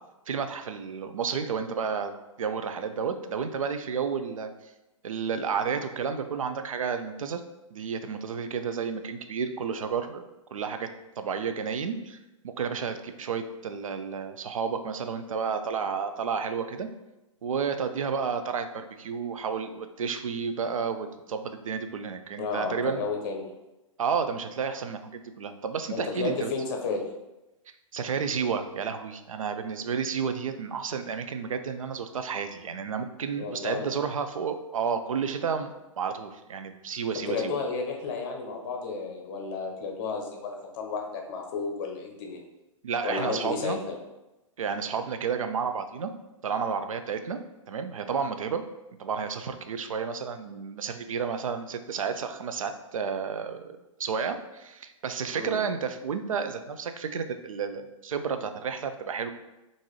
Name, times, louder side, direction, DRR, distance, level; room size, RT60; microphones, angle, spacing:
voice 1, 0.3-2.1 2.4-4.5 5.0-7.4 7.7-10.2 10.5-10.9 11.2-12.2 12.4-16.9 17.4-23.0 24.0-26.5 27.9-37.5 42.8-43.8 44.6-46.1 46.4-47.4 47.7-48.6 49.0-59.3, right 6 dB, 80° right, 8 dB, 0.4 m, -31 dB
voice 2, 22.4-23.5 25.9-27.1 33.4-33.9 37.3-42.4 43.0-44.0 55.3-55.6, left 4 dB, 45° left, 2 dB, 0.8 m, -32 dB
3.7 x 2.6 x 3.1 m, 1.0 s
hypercardioid pair, 115°, 17 cm